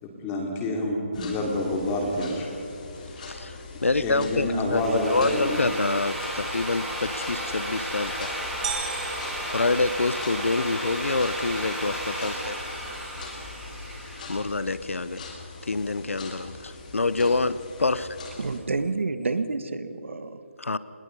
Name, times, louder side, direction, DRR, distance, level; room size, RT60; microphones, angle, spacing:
voice 1, 0.0-2.5 4.0-5.6, left 1 dB, 15° left, 0 dB, 3.3 m, -28 dB
sound 1, 1.1-18.6, left 3 dB, 35° left, 3.2 m, -42 dB
voice 2, 3.2-8.3 9.4-12.6 14.3-15.3 15.6-18.2 20.6-20.8, left 3 dB, 80° left, 16 dB, 0.9 m, -27 dB
Drill, 4.6-14.4, equal, 5° right, 2.9 m, -34 dB
sound 2, 8.6-10.6, right 6 dB, 30° right, 2.1 m, -36 dB
voice 3, 18.4-20.4, right 3 dB, 65° right, 11 dB, 1.4 m, -29 dB
26.0 x 20.5 x 5.5 m, 2.7 s
figure-of-eight pair, 160°, 7 cm